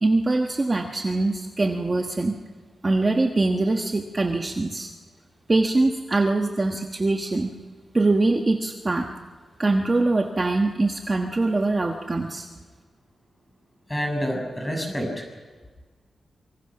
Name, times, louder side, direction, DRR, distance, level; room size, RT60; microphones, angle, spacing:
voice 1, 0.0-2.3 2.8-4.9 5.5-7.5 7.9-9.1 9.6-12.5, right 2 dB, 25° right, 3 dB, 1.4 m, -23 dB
voice 2, 13.9-15.3, equal, 10° left, 2 dB, 6.1 m, -28 dB
26.0 x 24.0 x 5.9 m, 1.5 s
wide cardioid pair, 145°, 0 cm